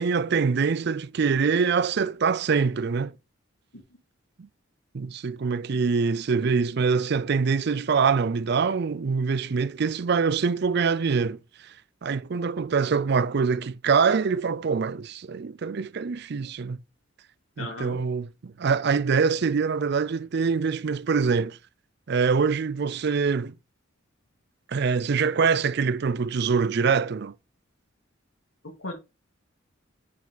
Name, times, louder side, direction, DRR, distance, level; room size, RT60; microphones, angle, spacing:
voice 1, 0.0-3.1 4.9-11.4 12.0-16.8 17.6-21.6 22.1-23.5 24.7-27.3, right 5 dB, 55° right, 0.4 m, -24 dB
voice 2, 17.6-18.0 28.8-28.9, left 2 dB, 85° left, 3.2 m, -37 dB
9.3 x 5.1 x 3.9 m
head